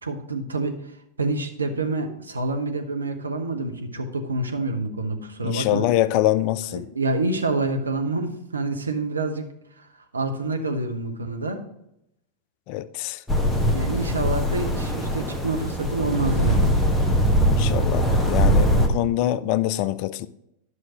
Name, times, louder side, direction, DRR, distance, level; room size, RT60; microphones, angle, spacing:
voice 1, 0.0-0.7 1.2-5.9 6.7-9.5 9.8-9.9 10.1-11.6 13.7-16.8, right 2 dB, 75° right, 0.9 m, -27 dB
voice 2, 5.4-6.8 12.7-13.2 17.4-20.3, left 13 dB, 45° left, 0.4 m, -24 dB
sound 1, 13.3-18.9, equal, 5° left, 1.1 m, -21 dB
11.0 x 6.2 x 2.9 m
figure-of-eight pair, 90°, 0 cm